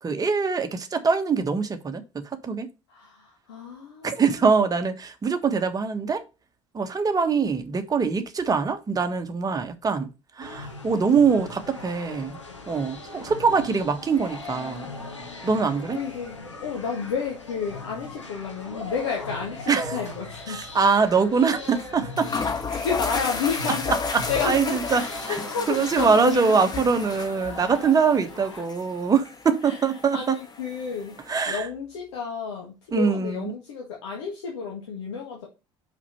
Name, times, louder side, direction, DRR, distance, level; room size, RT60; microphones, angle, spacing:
voice 1, 0.0-2.7 4.0-6.2 6.7-10.1 10.4-12.4 12.7-14.9 15.4-16.0 19.7-20.0 20.5-22.3 24.1-25.4 25.7-30.4 31.3-31.7 32.9-33.5, right 5 dB, 25° right, 1.4 m, -23 dB
voice 2, 2.9-4.7 14.5-15.6 15.9-20.8 22.3-26.8 29.6-29.8 30.1-31.2 31.5-35.5, left 6 dB, 65° left, 1.8 m, -32 dB
sound 1, 10.4-28.6, left 2 dB, 85° left, 1.5 m, -40 dB
sound 2, 20.1-20.4 20.6-20.7 21.8-21.9 22.2-31.5, left 4 dB, 25° left, 1.6 m, -33 dB
5.8 x 5.6 x 5.5 m
figure-of-eight pair, 60°, 15 cm